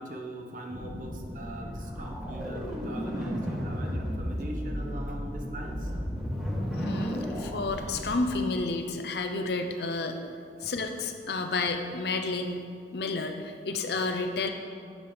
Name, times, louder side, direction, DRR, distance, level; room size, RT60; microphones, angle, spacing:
voice 1, 0.0-5.9 10.1-10.2 10.6-10.7, right 1 dB, 50° right, 2 dB, 0.9 m, -41 dB
sound 1, 0.7-8.3, equal, 5° right, 1.5 m, -34 dB
voice 2, 6.7-10.2 10.6-12.7 12.9-14.5, left 3 dB, 65° left, 6 dB, 0.6 m, -31 dB
8.0 x 5.2 x 5.6 m, 2.3 s
head